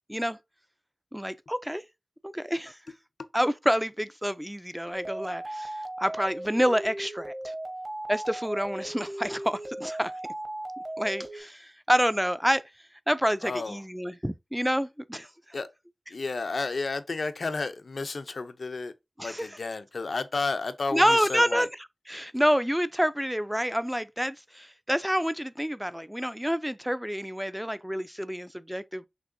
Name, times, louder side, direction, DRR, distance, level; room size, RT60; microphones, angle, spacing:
voice 1, 1.1-1.8 2.2-2.8 3.3-7.5 8.1-10.1 11.0-12.6 13.1-15.3 19.2-19.5 20.9-21.7 22.1-29.1, equal, 5° right, 0.3 m, -28 dB
sound 1, 4.9-11.4, right 1 dB, 35° right, 1.0 m, -37 dB
voice 2, 13.4-13.8 15.5-15.7 16.1-18.9 19.2-21.7, left 3 dB, 80° left, 0.5 m, -32 dB
6.1 x 2.9 x 2.6 m
wide cardioid pair, 85°, 0 cm